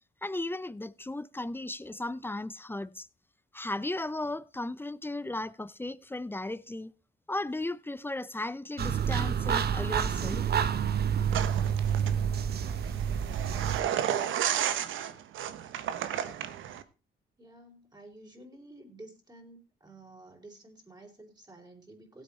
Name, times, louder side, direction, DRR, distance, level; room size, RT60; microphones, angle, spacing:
voice 1, 0.2-3.1 3.5-6.9 7.3-10.5, left 2 dB, 10° left, 0.6 m, -36 dB
sound 1, 8.8-13.8, right 8 dB, 55° right, 1.1 m, -28 dB
sound 2, 11.3-16.8, right 10 dB, 80° right, 1.2 m, -33 dB
voice 2, 17.4-22.2, right 2 dB, 20° right, 4.2 m, -51 dB
16.5 x 8.3 x 4.3 m
cardioid pair, 90°, 20 cm